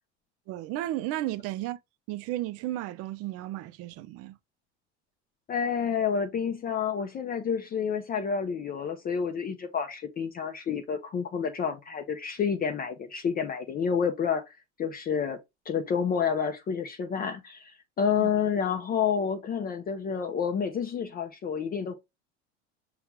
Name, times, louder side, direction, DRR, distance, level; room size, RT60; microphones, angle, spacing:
voice 1, 0.5-1.8 2.1-4.4 18.2-18.3, right 15 dB, 45° right, 0.5 m, -33 dB
voice 2, 5.5-15.4 15.7-22.0, left 7 dB, 25° left, 0.5 m, -29 dB
5.7 x 2.3 x 2.9 m
hypercardioid pair, 95°, 34 cm